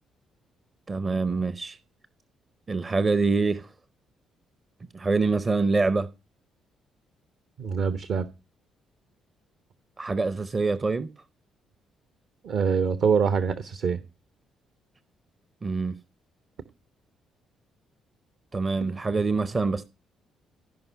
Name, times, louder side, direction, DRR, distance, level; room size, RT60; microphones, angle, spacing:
voice 1, 0.9-1.8 2.7-3.7 4.9-6.1 10.0-11.1 15.6-16.0 18.5-19.8, right 3 dB, 30° right, 0.8 m, -25 dB
voice 2, 7.6-8.2 12.4-14.0, right 6 dB, 55° right, 1.0 m, -24 dB
16.0 x 5.6 x 10.0 m
figure-of-eight pair, 45°, 0 cm